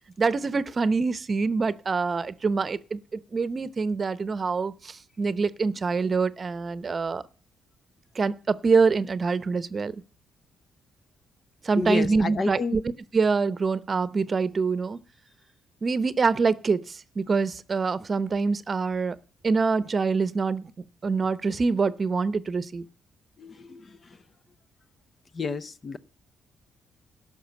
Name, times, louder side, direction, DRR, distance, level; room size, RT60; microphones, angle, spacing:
voice 1, 0.2-7.2 8.1-10.0 11.6-12.8 13.1-15.0 15.8-19.2 19.4-20.7 21.0-22.9, right 4 dB, 35° right, 0.8 m, -25 dB
voice 2, 11.7-12.8 23.4-24.2 25.3-26.0, left 3 dB, 40° left, 0.7 m, -30 dB
12.0 x 6.1 x 8.2 m
cardioid pair, 90°, 0 cm